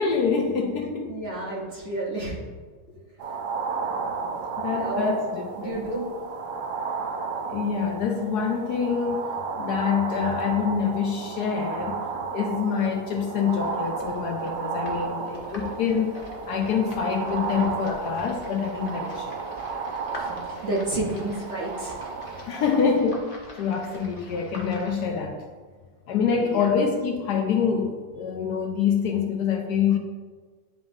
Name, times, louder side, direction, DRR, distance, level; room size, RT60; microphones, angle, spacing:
voice 1, 0.0-1.2 4.6-5.9 7.4-12.0 12.3-16.2 16.5-19.4 22.4-23.3 23.5-25.4 26.1-30.0, left 6 dB, 70° left, 1.0 m, -26 dB
voice 2, 1.1-2.4 4.7-5.1 5.6-6.0 20.2-20.3 20.6-21.9 26.4-26.7, right 2 dB, 45° right, 1.1 m, -30 dB
sound 1, 3.2-23.0, right 5 dB, 90° right, 1.4 m, -33 dB
sound 2, 13.4-25.0, left 1 dB, 35° left, 0.6 m, -44 dB
10.5 x 3.6 x 2.6 m
omnidirectional pair, 2.0 m